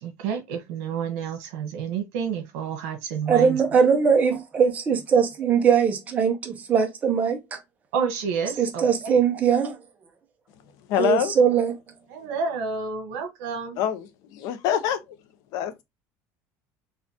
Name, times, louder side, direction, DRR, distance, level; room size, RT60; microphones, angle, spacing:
voice 1, 0.0-3.6 7.9-9.1 12.1-13.8, right 6 dB, 75° right, 1.2 m, -30 dB
voice 2, 3.3-7.6 8.6-9.8 11.0-11.7, right 6 dB, 20° right, 0.7 m, -21 dB
voice 3, 10.9-11.3 13.8-15.2 15.5-15.8, left 10 dB, 60° left, 0.6 m, -25 dB
4.1 x 2.4 x 2.8 m
cardioid pair, 165°, 7 cm